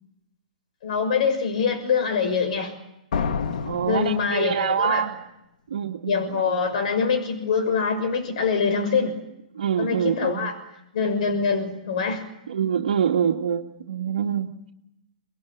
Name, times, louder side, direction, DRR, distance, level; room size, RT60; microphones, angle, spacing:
voice 1, 0.8-2.7 3.8-5.0 6.1-9.2 9.8-10.6 10.9-12.2, left 5 dB, 55° left, 7 dB, 6.6 m, -24 dB
sound 1, 3.1-4.9, left 6 dB, 75° left, 1.9 m, -29 dB
voice 2, 3.6-5.2 5.7-6.6 9.6-10.5 12.5-14.5, right 8 dB, 75° right, 1 dB, 1.8 m, -25 dB
26.0 x 20.5 x 9.4 m, 0.86 s
hypercardioid pair, 150°, 5 cm